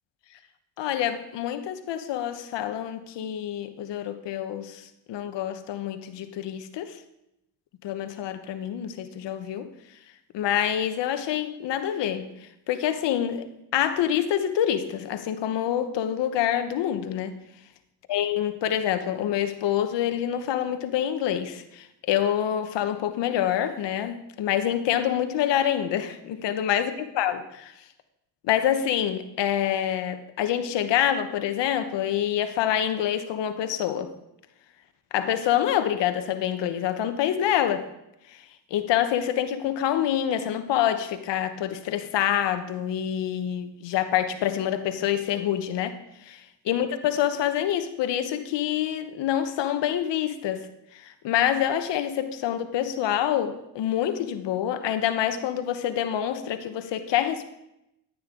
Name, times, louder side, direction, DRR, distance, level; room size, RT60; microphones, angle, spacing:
voice 1, 0.8-7.0 7.8-9.7 10.3-12.3 12.7-13.5 13.7-17.4 18.1-27.7 28.4-34.1 35.1-37.9 38.7-46.0 46.2-50.7 50.9-57.4, left 10 dB, 75° left, 9 dB, 1.1 m, -26 dB
14.5 x 8.8 x 3.8 m, 0.85 s
supercardioid pair, 70°, 43 cm